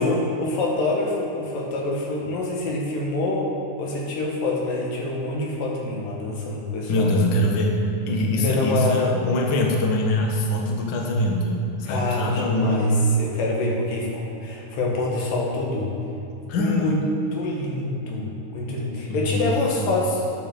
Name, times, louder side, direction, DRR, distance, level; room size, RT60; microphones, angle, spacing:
voice 1, 0.0-3.5 3.8-7.1 8.3-9.2 11.9-15.9 16.5-17.0 17.3-20.2, left 2 dB, 85° left, -2 dB, 3.4 m, -26 dB
voice 2, 6.9-7.7 8.1-12.9 16.5-16.9 19.1-19.5 19.8-20.0, left 1 dB, 50° left, 0 dB, 1.5 m, -23 dB
9.6 x 8.8 x 6.8 m, 2.9 s
omnidirectional pair, 3.8 m